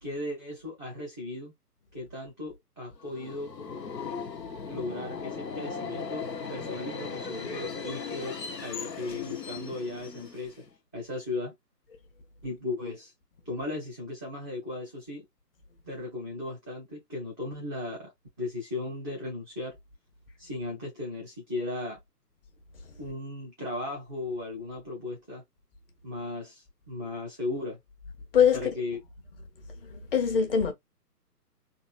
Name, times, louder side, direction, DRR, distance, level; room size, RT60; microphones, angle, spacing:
voice 1, 0.0-1.5 1.9-3.5 4.7-10.6 10.9-11.5 12.4-13.1 13.4-15.2 15.8-18.1 18.4-19.8 20.4-22.0 23.0-25.4 26.0-27.8 28.5-29.0, left 2 dB, 15° left, 0.5 m, -36 dB
Subway metro underground, 3.0-10.7, left 5 dB, 85° left, 1.1 m, -38 dB
voice 2, 4.4-4.7 22.8-23.0 28.3-28.7 29.8-30.7, left 7 dB, 35° left, 1.2 m, -24 dB
3.9 x 2.6 x 2.4 m
figure-of-eight pair, 140°, 49 cm